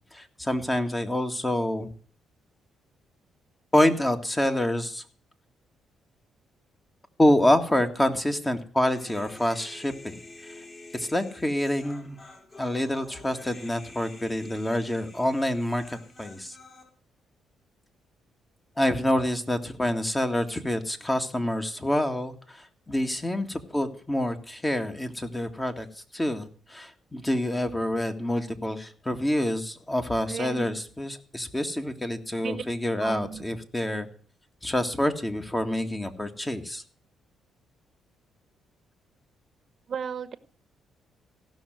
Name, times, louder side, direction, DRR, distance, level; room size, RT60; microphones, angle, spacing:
voice 1, 0.1-1.9 3.7-5.0 7.2-10.5 10.9-12.2 12.6-16.6 18.8-25.9 26.1-34.1 34.6-36.8, left 1 dB, 15° left, 6 dB, 2.0 m, -27 dB
Human voice, 8.8-16.8, left 2 dB, 35° left, 4.5 m, -48 dB
voice 2, 30.2-30.8 32.4-32.6 33.0-33.4 39.9-40.4, right 7 dB, 50° right, 10 dB, 1.3 m, -35 dB
16.0 x 6.3 x 9.3 m, 0.44 s
cardioid pair, 90°, 0 cm